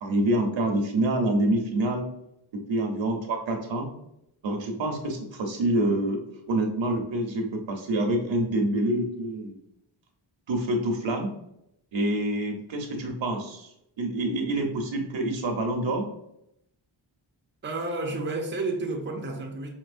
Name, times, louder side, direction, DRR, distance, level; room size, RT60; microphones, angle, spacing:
voice 1, 0.0-2.1 2.5-3.9 4.4-9.6 10.5-11.3 11.9-13.7 14.0-16.1, right 1 dB, 70° right, 0.9 m, -27 dB
voice 2, 17.6-19.7, right 2 dB, 25° right, 0.5 m, -31 dB
5.4 x 2.9 x 2.5 m
wide cardioid pair, 130°, 47 cm